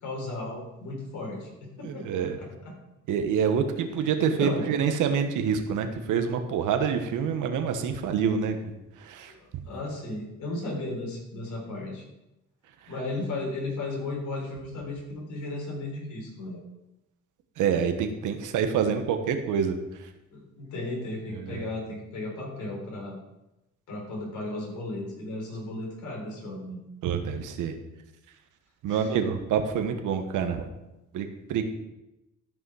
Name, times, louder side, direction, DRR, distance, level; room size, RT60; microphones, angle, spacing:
voice 1, 0.0-2.1 2.4-2.7 4.0-4.7 9.3-12.0 12.9-16.6 20.3-23.2 23.9-26.8 28.9-29.1, left 2 dB, 75° left, -1 dB, 4.1 m, -35 dB
voice 2, 1.8-2.4 3.1-9.3 12.8-12.9 17.6-20.1 21.3-21.6 27.0-27.7 28.8-30.6 31.1-31.6, right 7 dB, 85° right, 7 dB, 1.3 m, -27 dB
13.5 x 5.6 x 4.8 m, 0.96 s
cardioid pair, 90°, 30 cm